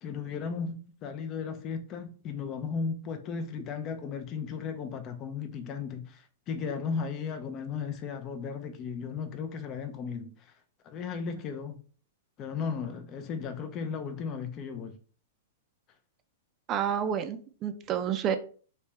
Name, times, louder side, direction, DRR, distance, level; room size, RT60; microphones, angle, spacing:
voice 1, 0.0-10.5 10.8-11.8 12.4-15.0, left 5 dB, 30° left, 0.5 m, -35 dB
voice 2, 16.7-18.4, right 8 dB, 30° right, 0.4 m, -29 dB
3.3 x 2.8 x 3.2 m
hypercardioid pair, 135°, 0 cm